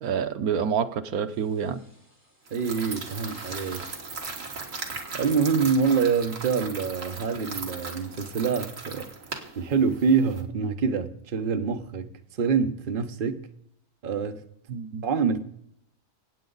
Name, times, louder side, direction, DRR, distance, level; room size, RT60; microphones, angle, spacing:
voice 1, 0.0-1.8 14.7-15.0, right 7 dB, 80° right, 1.3 m, -27 dB
sound 1, 1.3-8.2, equal, 10° right, 5.1 m, -54 dB
voice 2, 2.5-3.9 5.1-9.1 9.5-12.1 12.4-13.4 14.0-14.4 15.0-15.4, right 5 dB, 40° right, 1.0 m, -25 dB
sound 2, 2.5-10.4, right 4 dB, 60° right, 2.1 m, -38 dB
26.5 x 8.8 x 4.0 m
omnidirectional pair, 1.5 m